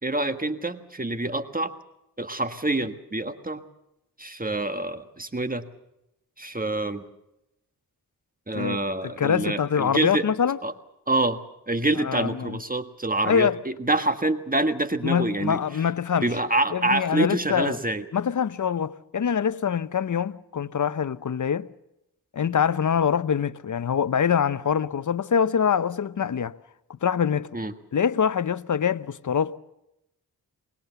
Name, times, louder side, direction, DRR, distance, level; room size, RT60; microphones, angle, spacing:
voice 1, 0.0-1.7 2.2-3.6 4.2-5.7 6.4-7.0 8.5-10.2 10.6-10.7 11.1-11.4 11.7-15.6 16.2-18.0 27.5-27.7, right 2 dB, 20° right, 1.5 m, -26 dB
voice 2, 9.0-10.6 12.0-12.6 13.2-13.6 15.0-16.3 16.7-17.8 18.1-21.7 22.3-26.5 27.0-27.5 27.9-29.6, left 7 dB, 50° left, 0.8 m, -24 dB
24.5 x 20.5 x 6.9 m
cardioid pair, 55°, 38 cm